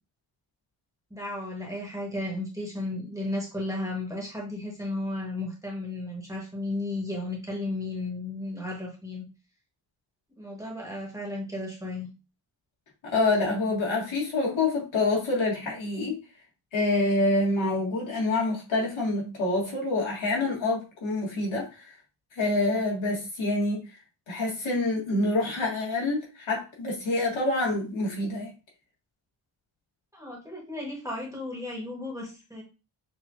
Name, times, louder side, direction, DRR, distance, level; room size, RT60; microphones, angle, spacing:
voice 1, 1.1-9.3 10.4-12.1 30.1-32.6, left 2 dB, 5° right, 1.2 m, -34 dB
voice 2, 13.0-16.2 16.7-21.9 22.4-23.9 24.3-28.5, left 2 dB, 75° left, 2.1 m, -27 dB
6.6 x 2.9 x 2.5 m
wide cardioid pair, 170°, 48 cm